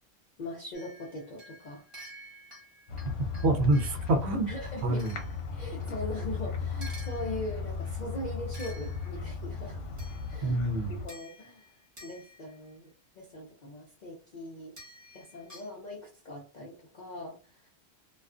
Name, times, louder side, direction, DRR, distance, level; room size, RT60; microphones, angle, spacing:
voice 1, 0.4-1.8 4.5-5.0 5.5-9.8 10.3-11.8 12.0-12.9 13.2-14.8 15.1-17.7, left 1 dB, 55° left, 0.5 m, -41 dB
sound 1, 0.7-4.2 5.0-6.1 6.8-7.7 8.5-9.4 10.0-10.6 11.1-12.7 14.8-15.7, equal, 25° right, 1.1 m, -51 dB
sound 2, 2.9-11.1, left 5 dB, 75° left, 1.0 m, -36 dB
voice 2, 3.4-4.5 4.8-5.2 10.4-11.0, right 2 dB, 70° right, 0.8 m, -26 dB
2.4 x 2.2 x 2.4 m
omnidirectional pair, 1.3 m